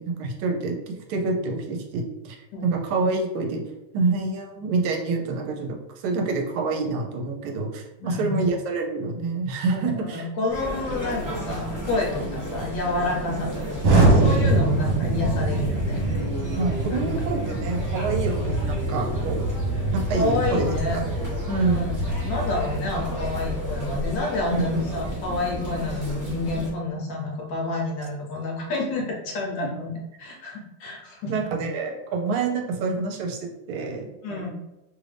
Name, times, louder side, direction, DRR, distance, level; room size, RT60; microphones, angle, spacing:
voice 1, 0.0-2.4 2.6-3.6 3.9-5.8 6.0-10.3 16.5-19.5 19.9-21.0 21.5-21.9 24.5-24.6 31.3-34.5, right 3 dB, 80° right, 2 dB, 1.4 m, -27 dB
voice 2, 8.0-8.4 9.7-16.0 16.9-17.0 20.1-21.0 21.5-29.9 30.2-31.3 34.2-34.5, left 2 dB, 70° left, -1 dB, 1.3 m, -29 dB
sound 1, 10.5-26.7, equal, 30° right, 0.3 m, -33 dB
Explosion, 13.8-23.8, right 2 dB, 65° right, 1.5 m, -24 dB
3.4 x 2.5 x 3.2 m, 0.96 s
omnidirectional pair, 2.3 m